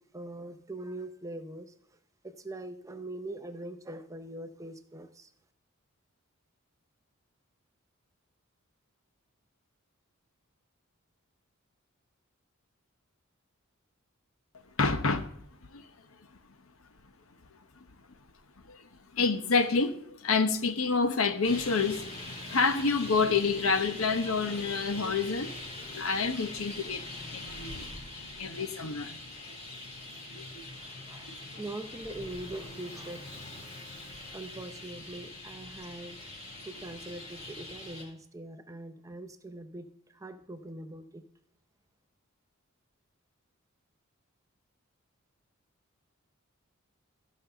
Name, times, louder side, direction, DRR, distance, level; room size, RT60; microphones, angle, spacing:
voice 1, 0.0-1.7 2.2-5.3 30.8-33.4 34.3-36.2 36.6-41.3, right 1 dB, 15° right, 0.7 m, -42 dB
voice 2, 14.8-15.3 15.7-15.9 17.8-17.9 18.7-18.8 19.1-25.5 25.9-27.0 27.3-27.9 28.4-29.2 30.3-30.6 31.3-31.4, left 4 dB, 70° left, 0.9 m, -28 dB
Traffic noise roadway noise, 21.4-38.0, left 2 dB, 30° left, 3.4 m, -43 dB
14.0 x 5.6 x 6.7 m
head